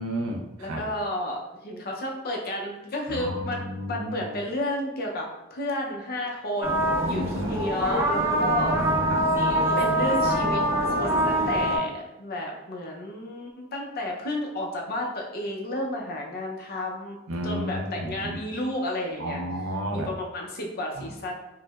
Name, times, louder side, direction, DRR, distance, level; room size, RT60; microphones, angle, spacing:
voice 1, 0.0-0.8 3.1-4.4 7.0-7.6 8.7-9.3 17.3-18.4 19.2-20.1 21.0-21.1, equal, 80° right, 1 dB, 0.5 m, -32 dB
voice 2, 0.6-9.0 9.8-17.2 17.4-19.4 19.9-21.3, left 1 dB, 50° left, 0 dB, 0.6 m, -32 dB
sound 1, 6.6-11.8, right 1 dB, 10° right, 0.5 m, -24 dB
4.5 x 2.0 x 2.3 m, 0.95 s
head